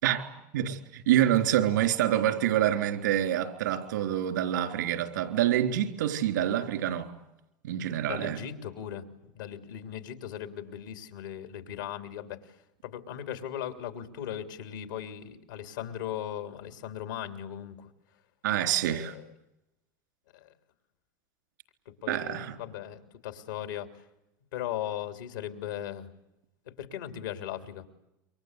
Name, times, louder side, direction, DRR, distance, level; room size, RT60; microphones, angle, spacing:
voice 1, 0.0-7.1 7.6-8.4 18.4-19.1 22.1-22.6, right 11 dB, 80° right, 3.8 m, -27 dB
voice 2, 8.1-9.0 9.3-12.6 12.8-17.9 18.8-19.3 20.3-20.5 21.8-24.1 24.5-26.1 26.6-27.9, left 10 dB, 85° left, 3.1 m, -38 dB
28.0 x 24.5 x 8.2 m
hypercardioid pair, 95°, 10 cm